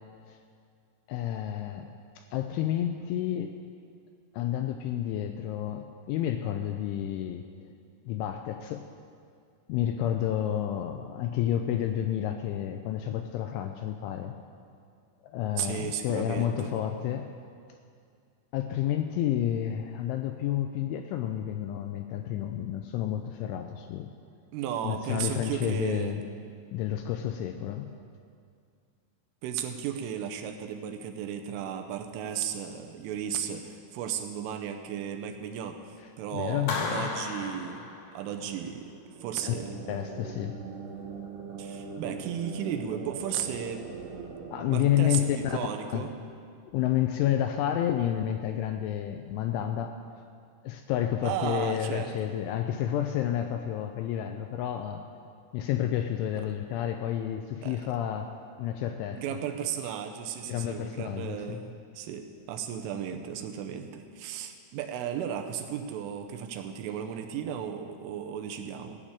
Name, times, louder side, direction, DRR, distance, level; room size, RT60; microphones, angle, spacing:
voice 1, 1.1-1.9 2.2-3.5 4.3-7.7 8.0-8.9 9.7-14.3 15.2-17.3 18.5-24.1 24.8-26.2 26.7-27.9 36.3-37.1 39.4-39.5 39.9-40.6 44.5-45.4 45.9-46.1 46.7-49.9 50.6-55.0 55.5-58.3 58.6-59.2 60.5-61.6, left 11 dB, 85° left, 6 dB, 2.8 m, -30 dB
voice 2, 15.6-16.7 24.5-26.1 29.4-39.8 41.6-43.9 44.7-46.1 51.2-52.3 57.6-57.8 59.1-69.0, right 8 dB, 80° right, 5 dB, 3.2 m, -35 dB
Clapping, 36.7-38.6, left 3 dB, 65° left, 3.0 m, -35 dB
sound 1, 38.9-46.6, right 5 dB, 60° right, 3.1 m, -42 dB
16.0 x 6.6 x 8.7 m, 2.2 s
omnidirectional pair, 5.9 m